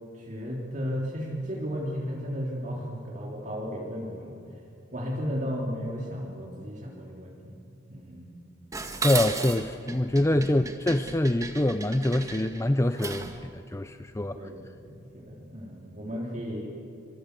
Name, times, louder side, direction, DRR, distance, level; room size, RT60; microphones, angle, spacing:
voice 1, 0.1-4.4 4.9-7.6 7.9-8.3 14.3-16.7, equal, 40° right, -2 dB, 3.3 m, -34 dB
Dishes pots and pans, 8.7-13.4, right 3 dB, 15° right, 1.8 m, -35 dB
voice 2, 9.0-14.4, left 1 dB, 15° left, 10 dB, 0.5 m, -25 dB
26.5 x 24.0 x 8.3 m, 2.8 s
head